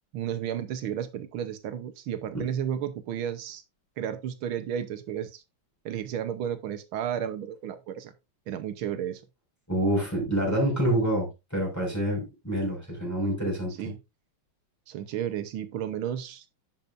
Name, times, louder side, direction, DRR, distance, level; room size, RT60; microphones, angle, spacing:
voice 1, 0.1-3.6 4.0-5.4 5.9-8.1 8.5-9.2 13.8-14.0 14.9-16.5, right 9 dB, 85° right, 1.8 m, -33 dB
voice 2, 9.7-13.7, right 1 dB, 5° left, 5.2 m, -27 dB
11.0 x 7.6 x 2.5 m
omnidirectional pair, 2.2 m